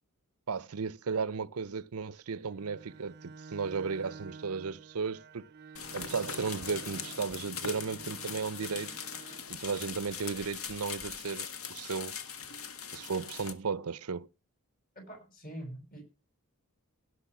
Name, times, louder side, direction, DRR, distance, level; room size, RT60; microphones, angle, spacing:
voice 1, 0.5-5.5 5.9-9.0 9.5-12.1 12.9-14.3, right 5 dB, 90° right, 0.7 m, -35 dB
Bowed string instrument, 2.5-9.5, right 4 dB, 45° right, 0.6 m, -50 dB
sound 1, 5.8-13.5, left 7 dB, 70° left, 1.7 m, -41 dB
voice 2, 14.9-16.0, right 1 dB, 40° left, 6.4 m, -44 dB
17.0 x 6.5 x 6.1 m
head